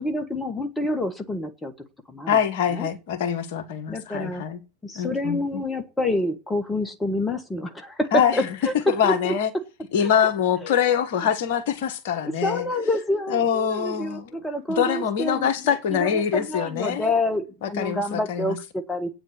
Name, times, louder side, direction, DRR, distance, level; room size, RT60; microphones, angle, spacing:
voice 1, 0.0-1.7 2.1-2.4 2.7-2.9 3.9-4.4 4.8-8.7 9.0-9.3 10.0-10.1 10.6-10.7 12.2-15.5 15.9-19.1, left 1 dB, 10° left, 1.5 m, -27 dB
voice 2, 2.3-4.6 4.9-5.4 8.1-8.5 8.9-9.5 9.9-12.6 13.3-14.4 14.7-17.1 17.6-18.6, left 8 dB, 50° left, 1.5 m, -24 dB
8.7 x 7.9 x 8.5 m
figure-of-eight pair, 90°, 0 cm